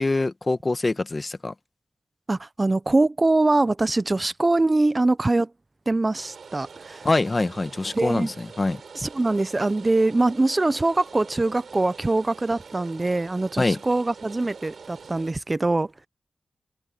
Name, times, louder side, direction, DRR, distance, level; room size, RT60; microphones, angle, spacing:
voice 1, 0.0-1.5 7.0-8.8 13.6-13.8, left 2 dB, 35° left, 1.3 m, -24 dB
voice 2, 2.3-5.5 5.9-7.1 7.9-8.3 8.9-16.1, right 2 dB, 35° right, 0.7 m, -23 dB
Rain, 6.2-15.3, right 5 dB, 75° right, 4.1 m, -44 dB
cardioid pair, 50°, 0 cm